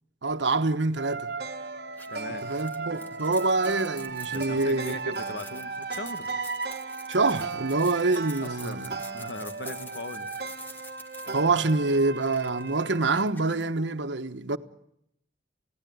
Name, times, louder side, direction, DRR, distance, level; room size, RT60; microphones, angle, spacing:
voice 1, 0.2-1.3 2.4-5.1 7.1-8.9 11.3-14.6, right 3 dB, 90° right, 1.2 m, -26 dB
sound 1, 1.0-13.3, right 4 dB, 60° right, 1.4 m, -36 dB
sound 2, 1.9-13.6, left 1 dB, 10° left, 1.6 m, -48 dB
voice 2, 2.1-2.5 4.3-6.3 8.4-10.3, left 2 dB, 70° left, 1.6 m, -39 dB
29.0 x 17.0 x 9.5 m
head